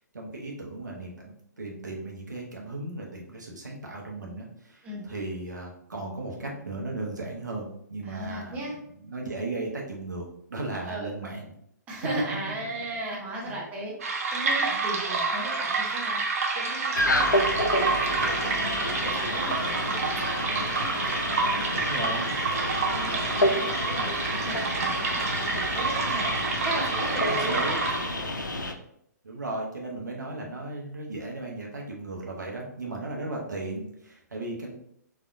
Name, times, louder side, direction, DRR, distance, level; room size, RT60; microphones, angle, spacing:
voice 1, 0.1-8.7 8.9-11.5 13.4-13.6 21.7-22.4 27.3-27.8 29.2-34.7, right 2 dB, 70° right, -1 dB, 1.0 m, -36 dB
voice 2, 8.0-8.7 10.8-11.1 11.9-13.9 14.3-16.2 16.5-21.9 22.5-26.3 26.6-27.5, right 2 dB, 15° right, -5 dB, 0.9 m, -37 dB
sound 1, 14.0-28.3, right 4 dB, 50° right, 0.6 m, -28 dB
sound 2, 16.9-28.7, left 1 dB, 85° left, 0.5 m, -29 dB
4.1 x 2.7 x 2.6 m, 0.70 s
figure-of-eight pair, 125°, 10 cm